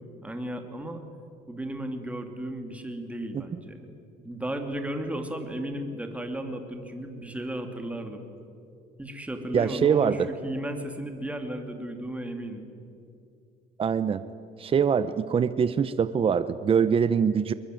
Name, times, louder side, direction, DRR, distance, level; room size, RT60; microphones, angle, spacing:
voice 1, 0.2-1.0 1.5-3.9 4.2-8.2 9.0-12.7, right 1 dB, 10° right, 5 dB, 2.7 m, -34 dB
voice 2, 9.5-10.3 13.8-14.2 14.6-17.5, right 7 dB, 35° right, 13 dB, 0.8 m, -23 dB
22.0 x 22.0 x 9.3 m, 2.5 s
cardioid pair, 110°, 17 cm